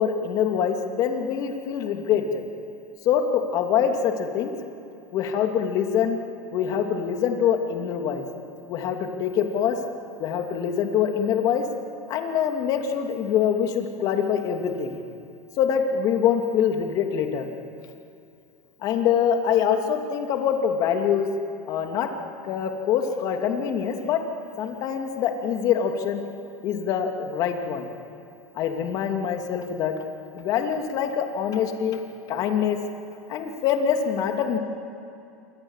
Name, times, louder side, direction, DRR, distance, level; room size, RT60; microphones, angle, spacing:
voice 1, 0.0-2.4 3.0-4.5 5.1-6.2 6.5-8.2 8.7-9.8 10.2-11.6 12.1-15.0 15.6-17.5 18.8-21.3 21.7-22.1 22.4-24.2 24.6-26.2 26.6-27.9 28.5-30.0 30.3-32.0 32.3-32.8 33.3-34.6, left 8 dB, 45° left, 4 dB, 2.8 m, -24 dB
27.5 x 25.0 x 7.5 m, 2.6 s
supercardioid pair, 145°, 9 cm